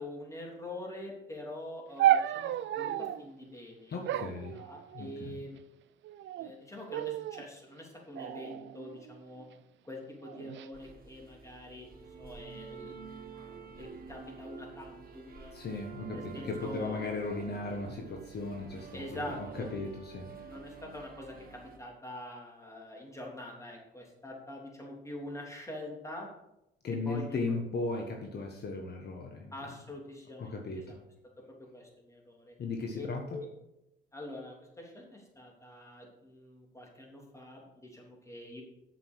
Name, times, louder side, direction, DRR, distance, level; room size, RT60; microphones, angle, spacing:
voice 1, 0.0-4.0 4.5-5.6 6.4-9.5 9.8-13.0 13.8-15.5 16.1-17.0 18.9-19.7 20.4-26.3 27.0-27.4 29.5-31.0 31.6-32.6 32.9-33.5 34.1-38.6, left 1 dB, 15° left, -1 dB, 3.3 m, -45 dB
sound 1, 2.0-3.3 4.1-5.3 6.0-6.5 6.9-7.5 8.2-9.4 10.2-10.7, right 12 dB, 70° right, 0.5 m, -32 dB
voice 2, 3.9-4.6 4.9-5.5 15.5-20.4 26.8-29.5 30.4-31.0 32.6-33.4, left 3 dB, 55° left, 2 dB, 1.4 m, -37 dB
sound 2, 10.7-21.8, right 5 dB, 50° right, 2.0 m, -48 dB
8.2 x 6.8 x 6.4 m, 0.86 s
cardioid pair, 90°, 20 cm